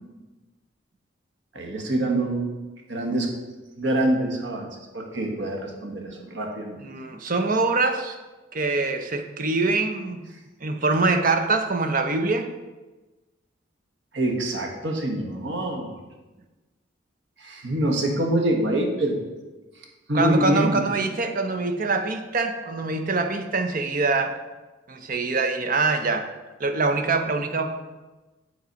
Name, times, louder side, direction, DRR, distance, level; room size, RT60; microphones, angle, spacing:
voice 1, 1.5-2.6 2.9-3.3 3.8-4.7 4.9-6.8 14.1-16.0 17.4-19.2 20.1-20.8, right 1 dB, 65° right, 1 dB, 1.3 m, -25 dB
voice 2, 6.8-8.2 8.5-10.2 10.6-12.5 20.1-24.3 24.9-26.3 26.6-27.8, right 3 dB, 45° right, 7 dB, 0.7 m, -24 dB
8.2 x 4.0 x 5.2 m, 1.2 s
head